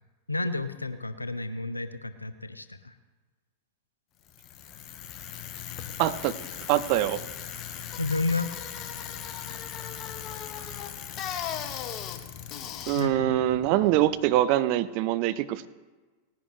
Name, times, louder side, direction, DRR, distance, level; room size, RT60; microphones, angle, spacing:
voice 1, 0.3-2.9 8.0-8.5 12.9-13.6, left 3 dB, 85° left, 12 dB, 0.8 m, -31 dB
Bicycle, 4.3-14.3, left 9 dB, 35° left, 1.3 m, -38 dB
voice 2, 6.0-6.3 6.7-7.2 12.9-15.7, right 14 dB, 45° right, 15 dB, 0.6 m, -24 dB
19.0 x 10.5 x 3.3 m, 1.3 s
figure-of-eight pair, 90°, 0 cm